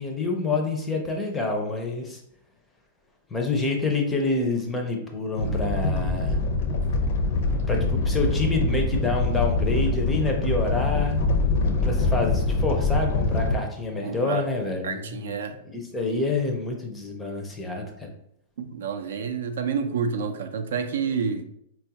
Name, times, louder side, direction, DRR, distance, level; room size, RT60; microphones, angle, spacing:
voice 1, 0.0-2.2 3.3-6.4 7.7-11.2 11.8-15.3 15.7-18.1, left 3 dB, 10° left, 2 dB, 0.5 m, -27 dB
Animal, 5.4-13.5, left 3 dB, 60° left, 0.5 m, -24 dB
voice 2, 14.0-14.4 14.8-15.5 18.6-21.4, right 6 dB, 75° right, 7 dB, 0.4 m, -29 dB
4.2 x 2.3 x 2.8 m, 0.74 s
supercardioid pair, 165°, 0 cm